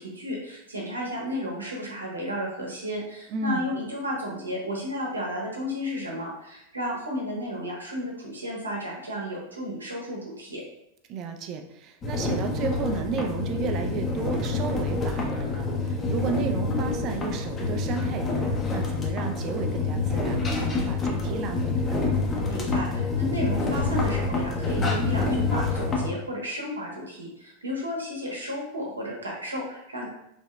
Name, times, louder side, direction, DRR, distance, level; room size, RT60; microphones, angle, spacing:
voice 1, 0.0-10.6 22.5-30.1, equal, 80° right, -2 dB, 0.8 m, -33 dB
voice 2, 3.3-3.7 11.1-22.1, right 5 dB, 35° right, 5 dB, 0.3 m, -33 dB
sound 1, 12.0-26.1, left 3 dB, 20° left, 0.6 m, -27 dB
3.2 x 2.7 x 2.2 m, 0.82 s
figure-of-eight pair, 90°, 0 cm